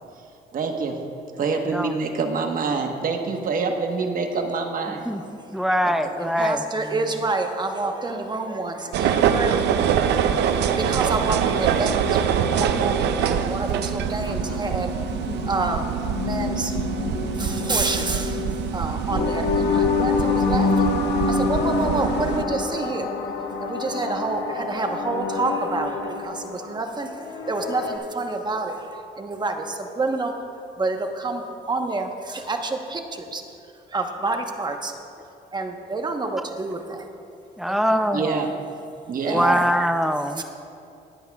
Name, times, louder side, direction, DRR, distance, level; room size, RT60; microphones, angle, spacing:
voice 1, 0.5-1.0 1.4-5.1 6.0-6.1 38.1-38.5 39.1-39.5, right 4 dB, 50° right, 4 dB, 1.2 m, -26 dB
voice 2, 5.1-6.9 37.6-38.4 39.3-40.4, equal, ahead, 8 dB, 0.6 m, -23 dB
voice 3, 6.2-12.3 12.6-14.9 15.5-15.9 16.2-16.8 17.3-20.9 21.3-23.1 23.6-30.3 30.8-33.4 33.9-35.0 35.5-37.1 37.7-38.0 39.2-39.6 40.4-40.5, right 3 dB, 25° right, 4 dB, 1.0 m, -28 dB
sound 1, 8.9-22.4, right 8 dB, 80° right, 0.6 m, -24 dB
sound 2, 10.2-28.0, left 4 dB, 75° left, 1.2 m, -28 dB
20.0 x 8.4 x 2.3 m, 2.6 s
cardioid pair, 95°, 18 cm